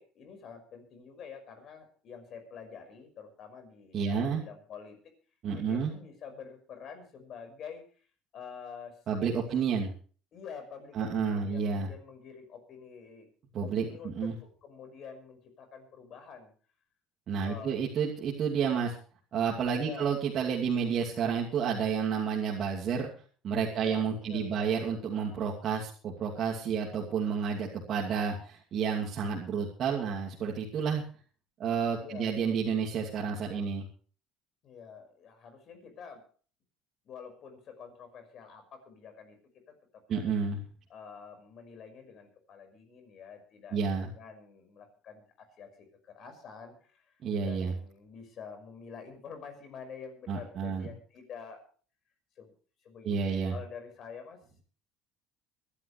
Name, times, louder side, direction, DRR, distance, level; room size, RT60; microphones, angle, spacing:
voice 1, 0.0-5.0 5.5-8.1 8.3-8.9 10.3-13.3 13.6-16.5 17.4-17.8 19.8-20.1 23.8-24.8 32.0-32.4 34.6-36.2 37.0-39.4 39.7-39.8 40.1-40.3 40.9-51.6 52.4-52.5 52.8-54.4, left 6 dB, 50° left, 6 dB, 5.6 m, -47 dB
voice 2, 3.9-4.4 5.4-5.9 9.1-9.9 10.9-11.9 13.5-14.4 17.3-18.9 19.3-23.1 23.4-31.0 31.6-33.9 40.1-40.6 43.7-44.1 47.2-47.7 50.3-50.9 53.0-53.5, right 6 dB, 45° right, -4 dB, 2.7 m, -30 dB
24.5 x 11.5 x 3.3 m, 0.41 s
cardioid pair, 120°, 0 cm